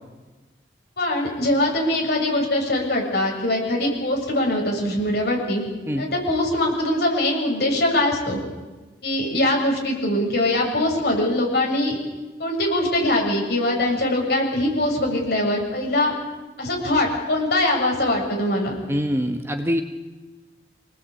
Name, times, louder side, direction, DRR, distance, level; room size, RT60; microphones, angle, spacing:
voice 1, 1.0-5.6 6.0-8.4 9.0-12.0 12.4-16.1 16.6-18.8, left 1 dB, 60° left, 0 dB, 7.3 m, -22 dB
voice 2, 18.9-19.8, equal, 15° right, 5 dB, 1.4 m, -24 dB
26.0 x 19.0 x 8.6 m, 1.2 s
head